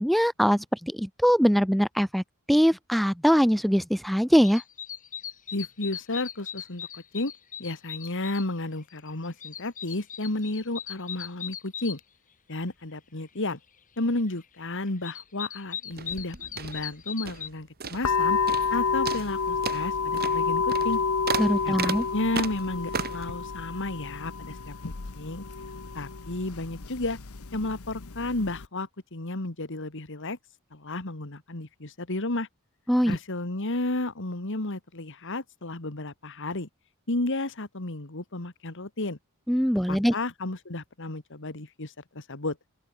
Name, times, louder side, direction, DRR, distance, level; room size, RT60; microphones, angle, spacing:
voice 1, 0.0-2.2 2.5-4.6 21.4-22.0 32.9-33.2 39.5-40.1, equal, ahead, 0.7 m, -22 dB
sound 1, 4.4-8.5 8.9-12.0 14.4-14.5 14.9-17.5, left 8 dB, 40° left, 3.1 m, -39 dB
voice 2, 5.5-7.3 7.6-12.0 12.5-13.6 14.0-18.4 18.7-21.0 21.6-24.7 25.2-25.4 25.9-27.2 27.5-30.4 30.7-32.5 33.1-36.7 37.1-39.2 39.9-42.6, left 2 dB, 60° left, 2.2 m, -32 dB
sound 2, 15.9-17.5 17.8-18.2 18.5-18.8 19.1-23.3, right 5 dB, 45° right, 4.2 m, -34 dB
sound 3, 18.0-28.7, left 5 dB, 80° left, 1.1 m, -29 dB
open air
head